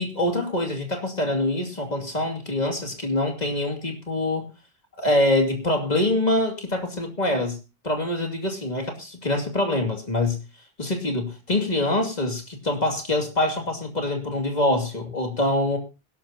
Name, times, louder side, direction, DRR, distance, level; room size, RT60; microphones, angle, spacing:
voice 1, 0.0-4.4 5.0-7.6 7.8-10.4 10.8-15.8, left 1 dB, 45° left, 3 dB, 2.8 m, -25 dB
21.0 x 12.0 x 2.9 m, 0.29 s
omnidirectional pair, 1.0 m